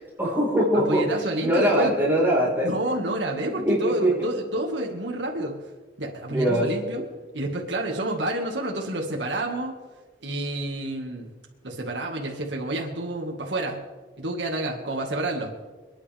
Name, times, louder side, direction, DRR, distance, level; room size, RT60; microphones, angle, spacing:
voice 1, 0.2-1.1 1.4-2.7 3.5-4.2 6.3-6.7, equal, 15° right, -5 dB, 4.5 m, -22 dB
voice 2, 0.7-1.9 2.6-5.6 6.0-7.0 7.3-9.7 10.2-11.3 11.6-13.8 14.2-15.5, right 1 dB, 85° right, 0 dB, 2.0 m, -29 dB
28.0 x 10.0 x 3.6 m, 1.3 s
head